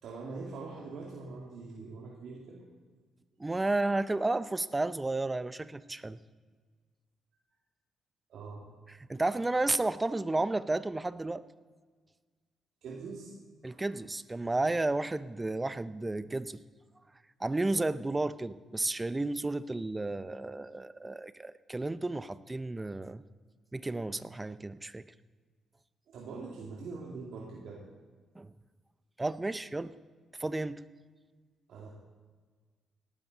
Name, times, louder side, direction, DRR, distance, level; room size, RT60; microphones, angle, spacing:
voice 1, 0.0-2.6 7.3-7.4 8.3-8.7 12.8-13.3 13.6-13.8 26.1-27.8 31.7-31.9, right 4 dB, 70° right, -3 dB, 2.4 m, -43 dB
voice 2, 3.4-6.2 9.1-11.4 13.6-16.6 17.4-23.2 23.7-25.1 28.4-28.5 29.2-30.0 30.4-30.8, right 2 dB, 15° right, 15 dB, 0.6 m, -32 dB
18.5 x 12.5 x 4.1 m, 1.5 s
cardioid pair, 90°, 0 cm